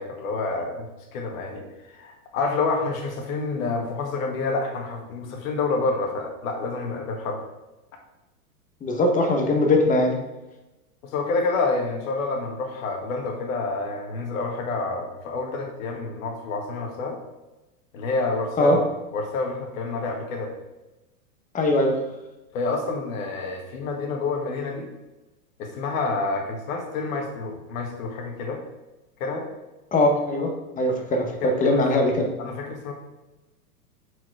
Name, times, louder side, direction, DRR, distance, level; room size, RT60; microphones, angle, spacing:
voice 1, 0.0-7.4 11.0-17.2 17.9-18.8 19.1-20.5 22.5-24.9 25.6-28.6 29.2-29.4 31.4-31.9 32.4-32.9, left 3 dB, 60° left, 2 dB, 1.9 m, -28 dB
voice 2, 8.8-10.2 18.6-18.8 21.5-22.0 29.9-30.5 30.8-32.3, left 1 dB, 15° left, 3 dB, 1.1 m, -21 dB
5.7 x 4.9 x 4.8 m, 1.0 s
hypercardioid pair, 115°, 45 cm